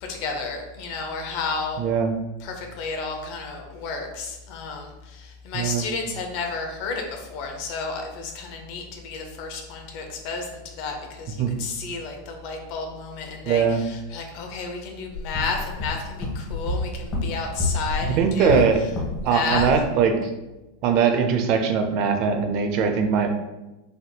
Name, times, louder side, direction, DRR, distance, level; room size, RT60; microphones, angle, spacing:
voice 1, 0.0-1.9 2.4-18.6 19.2-19.7, left 4 dB, 55° left, 3 dB, 0.6 m, -32 dB
voice 2, 1.8-2.1 5.5-5.9 11.4-11.5 13.5-13.8 18.2-18.8 19.2-20.3 20.8-23.3, right 6 dB, 50° right, 6 dB, 0.4 m, -21 dB
sound 1, 15.1-19.2 19.5-19.8, left 3 dB, 30° left, 0.9 m, -28 dB
3.4 x 2.7 x 2.2 m, 1.0 s
supercardioid pair, 130°, 0 cm